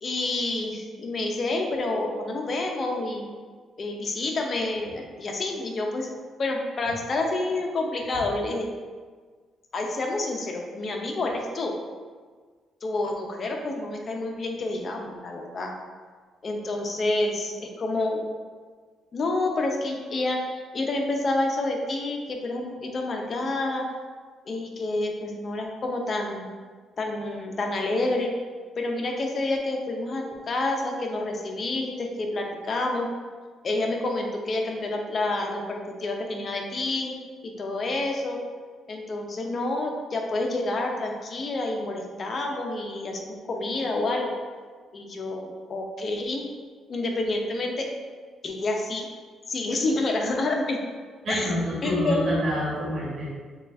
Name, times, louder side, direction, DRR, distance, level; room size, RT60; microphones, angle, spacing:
voice 1, 0.0-3.3 3.8-6.1 6.4-8.7 9.7-11.7 12.8-15.7 16.4-18.2 19.1-23.8 24.5-26.5 27.0-28.3 28.8-33.1 33.6-37.1 37.4-38.4 38.9-44.3 44.9-46.4 46.9-47.9 48.4-49.1 49.5-50.8 51.3-51.5 51.8-52.4, left 2 dB, 45° left, 2 dB, 0.7 m, -28 dB
voice 2, 51.2-53.3, left 1 dB, 50° right, -5 dB, 1.3 m, -27 dB
6.4 x 2.4 x 2.6 m, 1.5 s
cardioid pair, 90°, 0 cm